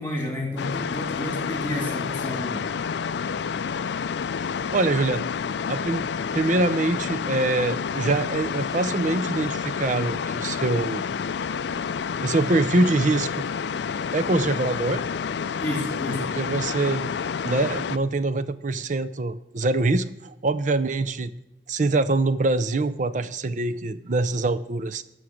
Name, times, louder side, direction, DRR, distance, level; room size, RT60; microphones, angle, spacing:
voice 1, 0.0-2.7 15.6-16.3, left 1 dB, 10° left, -1 dB, 2.9 m, -30 dB
sound 1, 0.6-18.0, left 6 dB, 65° left, 0.4 m, -29 dB
voice 2, 4.7-5.2 5.7-6.1 6.3-11.0 12.2-13.4 14.1-15.0 16.4-17.1 17.4-21.3 21.7-25.0, right 2 dB, 40° right, 12 dB, 0.5 m, -24 dB
13.0 x 6.2 x 6.4 m, 0.96 s
head